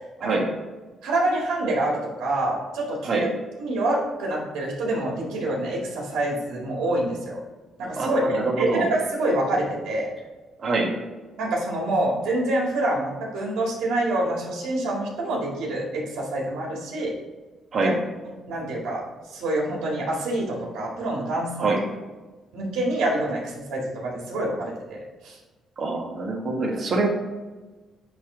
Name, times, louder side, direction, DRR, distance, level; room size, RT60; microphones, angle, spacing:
voice 1, 0.2-0.5 3.0-3.3 8.0-8.9 10.6-11.0 17.7-18.0 21.6-21.9 25.8-27.1, right 3 dB, 50° right, 0 dB, 1.6 m, -25 dB
voice 2, 1.0-3.3 3.6-7.4 7.8-10.1 11.4-17.1 17.8-17.9 18.5-19.0 19.3-21.7 22.5-25.4, right 1 dB, 85° right, -3 dB, 2.1 m, -26 dB
9.8 x 3.3 x 3.9 m, 1.2 s
cardioid pair, 90°, 0 cm